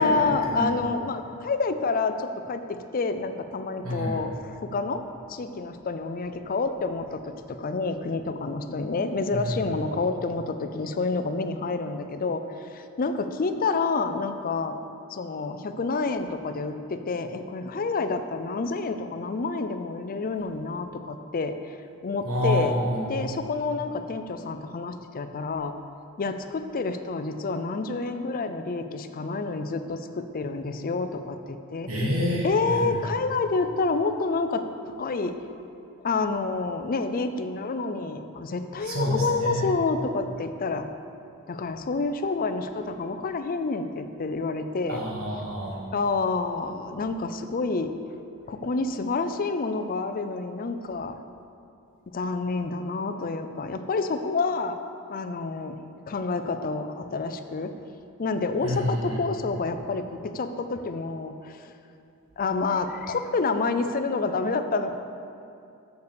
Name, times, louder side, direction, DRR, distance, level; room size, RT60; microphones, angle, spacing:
voice 1, 0.0-4.3 4.6-5.0 5.3-12.4 12.7-14.8 15.1-21.8 22.0-22.8 23.1-25.7 26.2-31.9 32.4-34.6 35.0-35.3 36.0-40.9 41.5-45.0 45.9-47.9 48.5-51.2 52.1-54.8 55.1-55.8 56.1-57.7 58.2-61.6 62.4-65.0, left 3 dB, 40° left, 9 dB, 0.5 m, -28 dB
voice 2, 22.2-23.0 31.9-32.9 38.8-39.1 39.4-39.6 44.9-45.8 58.6-59.1, equal, 70° right, -4 dB, 1.6 m, -27 dB
6.9 x 6.6 x 6.9 m, 2.6 s
head